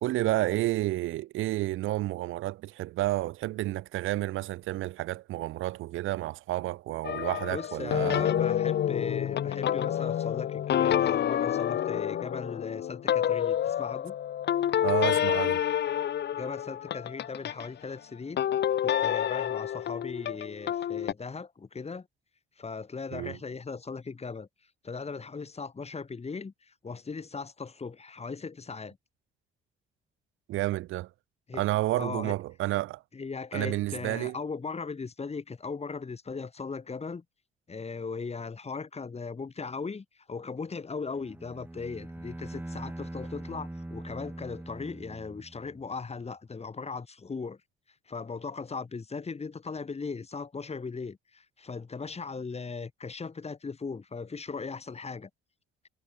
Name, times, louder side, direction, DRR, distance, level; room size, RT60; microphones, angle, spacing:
voice 1, 0.0-8.3 14.8-15.6 23.1-23.4 30.5-31.1 31.5-33.0 33.5-34.4, right 16 dB, 90° right, 1.5 m, -30 dB
sound 1, 7.0-17.7 18.4-21.1, left 10 dB, 60° left, 1.2 m, -28 dB
voice 2, 7.5-14.2 16.4-18.4 18.8-22.1 22.6-24.5 24.8-29.0 31.5-31.6 32.0-32.3 33.1-37.2 37.7-47.6 48.1-55.3, left 4 dB, 30° left, 6.0 m, -38 dB
Bowed string instrument, 41.1-45.9, right 1 dB, 10° right, 2.1 m, -42 dB
cardioid pair, 90°, 20 cm